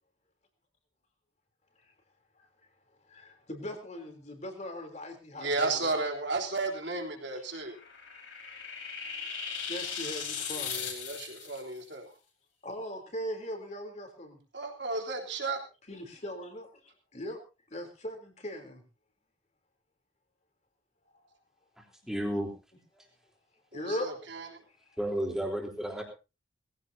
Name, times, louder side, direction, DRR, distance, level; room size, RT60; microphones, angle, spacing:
voice 1, 3.1-5.9 7.4-7.5 9.7-10.9 12.6-14.4 15.9-17.4 17.7-18.8 21.1-21.2 23.7-24.1 24.9-25.0, equal, 35° left, 4 dB, 3.5 m, -40 dB
voice 2, 5.4-7.8 10.7-12.1 14.5-15.6 23.7-24.4, right 3 dB, 60° right, 1 dB, 3.5 m, -33 dB
sound 1, 7.5-11.6, left 6 dB, 70° left, 5.0 m, -38 dB
voice 3, 22.1-22.5 23.0-23.1 25.0-26.0, right 1 dB, 5° right, 0 dB, 3.7 m, -32 dB
20.5 x 16.0 x 2.8 m, 0.30 s
head